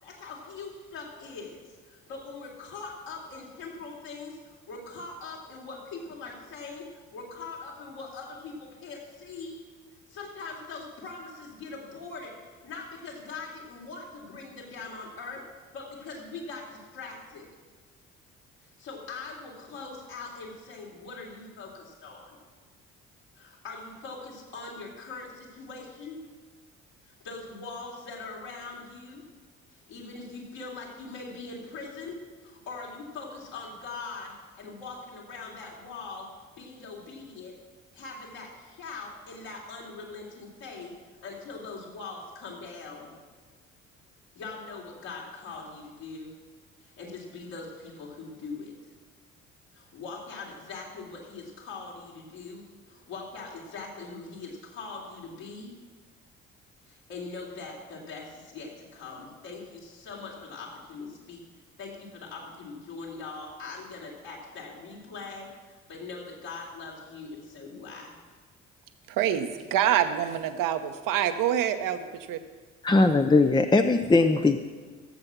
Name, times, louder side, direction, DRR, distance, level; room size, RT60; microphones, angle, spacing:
voice 1, 0.0-9.5 10.1-15.4 15.7-17.5 18.6-22.4 23.4-26.2 27.1-29.2 29.9-36.3 36.6-37.5 37.9-43.2 44.4-46.3 46.8-48.7 49.7-55.7 56.9-61.4 61.8-68.1, left 4 dB, 65° left, 3.5 m, -42 dB
voice 2, 69.1-72.4, right 10 dB, 60° right, 1.1 m, -26 dB
voice 3, 72.8-74.6, left 3 dB, 10° left, 0.6 m, -20 dB
17.0 x 7.6 x 6.1 m
figure-of-eight pair, 50°, 37 cm